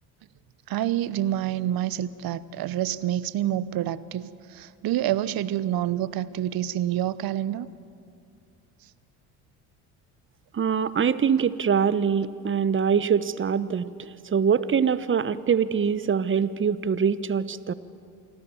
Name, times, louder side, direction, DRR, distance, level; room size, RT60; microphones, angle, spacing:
voice 1, 0.7-7.7, right 12 dB, 50° right, 18 dB, 1.0 m, -27 dB
voice 2, 10.5-17.7, right 7 dB, 25° right, 16 dB, 1.0 m, -24 dB
27.5 x 19.5 x 7.1 m, 2.5 s
hypercardioid pair, 65°, 46 cm